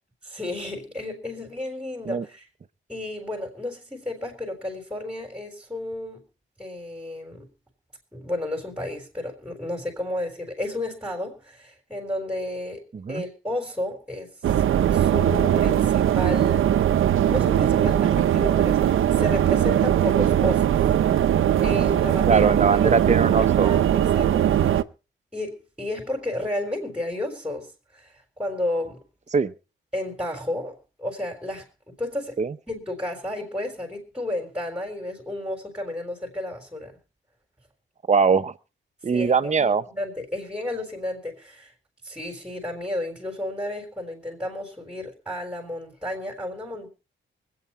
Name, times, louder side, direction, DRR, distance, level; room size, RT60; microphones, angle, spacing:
voice 1, 0.2-2.5 2.9-6.2 6.6-7.5 8.1-12.8 13.1-14.3 14.9-16.7 17.2-20.9 21.6-22.5 22.8-22.9 23.6-24.7 25.3-29.0 29.9-32.4 32.7-37.0 39.1-41.7 42.0-46.9, left 1 dB, 5° right, 3.8 m, -32 dB
voice 2, 12.9-13.2 22.2-23.7 29.3-29.5 32.4-32.5 38.1-38.6 39.0-39.8, right 5 dB, 35° right, 0.9 m, -21 dB
sound 1, 14.4-24.8, right 10 dB, 80° right, 0.8 m, -20 dB
24.5 x 8.7 x 4.4 m
wide cardioid pair, 155°, 20 cm